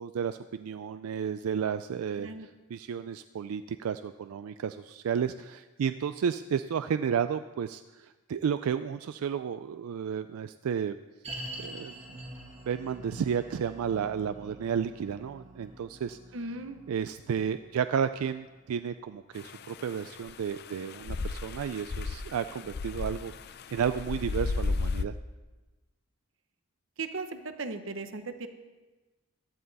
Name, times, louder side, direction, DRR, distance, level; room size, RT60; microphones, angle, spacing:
voice 1, 0.0-11.0 11.6-12.0 12.7-16.2 16.9-23.3 23.7-25.1, right 7 dB, 90° right, 11 dB, 0.4 m, -32 dB
sound 1, 11.2-22.5 22.8-22.9 23.5-23.6, right 1 dB, 30° right, 1.7 m, -47 dB
voice 2, 16.3-16.8 27.0-28.5, right 3 dB, 65° right, 9 dB, 0.9 m, -37 dB
sound 2, 19.4-25.0, left 3 dB, 50° left, 0.5 m, -34 dB
15.5 x 11.5 x 4.1 m, 1.2 s
head